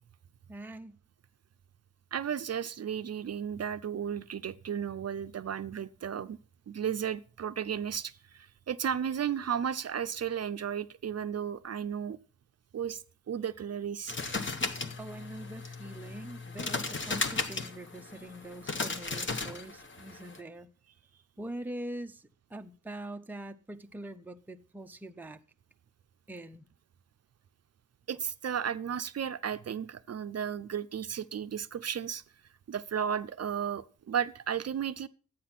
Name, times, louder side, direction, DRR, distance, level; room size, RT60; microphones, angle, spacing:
voice 1, 0.5-1.0 15.0-20.7 21.4-22.2 22.5-25.4 26.3-26.7, right 1 dB, 5° right, 0.5 m, -43 dB
voice 2, 2.1-6.4 6.7-8.1 8.7-12.2 12.7-13.0 13.3-14.1 28.1-32.2 32.7-35.1, right 8 dB, 55° right, 0.5 m, -34 dB
sound 1, 14.1-20.4, left 3 dB, 40° left, 1.1 m, -36 dB
12.0 x 8.8 x 5.8 m
wide cardioid pair, 175°, 30 cm